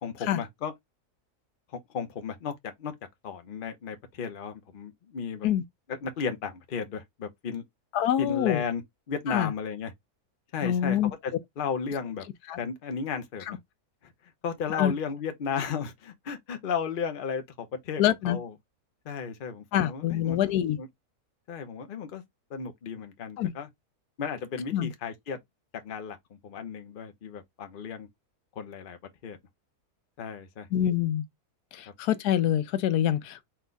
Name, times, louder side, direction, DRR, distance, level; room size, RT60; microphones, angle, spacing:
voice 1, 0.0-0.7 1.9-2.9 3.2-5.5 5.9-7.6 8.2-8.8 9.1-9.9 10.5-11.0 11.2-12.3 12.6-13.6 14.0-14.1 14.4-18.5 19.0-20.4 20.8-20.9 21.5-22.2 22.5-23.7 24.2-25.4 25.7-26.2 26.4-28.1 28.6-29.0 29.2-29.4 30.2-30.7 31.9-32.0, left 6 dB, 45° left, 0.8 m, -34 dB
voice 2, 7.9-8.6 9.3-9.5 10.6-11.1 12.5-12.6 14.7-14.9 18.0-18.4 19.7-20.8 23.4-23.5 24.7-24.9 30.7-31.2 31.7-33.4, left 11 dB, 85° left, 1.2 m, -25 dB
4.4 x 2.3 x 3.9 m
omnidirectional pair, 1.6 m